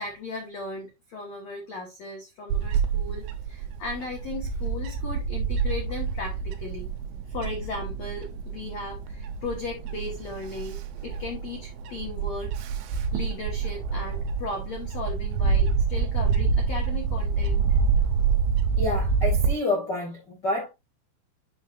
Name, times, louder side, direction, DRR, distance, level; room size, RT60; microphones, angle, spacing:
voice 1, 0.0-6.9 7.3-12.5 13.1-17.8, left 3 dB, 85° left, 1.5 m, -36 dB
Bird / Wind, 2.5-19.5, right 5 dB, 80° right, 3.3 m, -27 dB
voice 2, 18.8-20.7, left 2 dB, 45° left, 1.4 m, -28 dB
10.0 x 5.7 x 2.5 m
omnidirectional pair, 5.6 m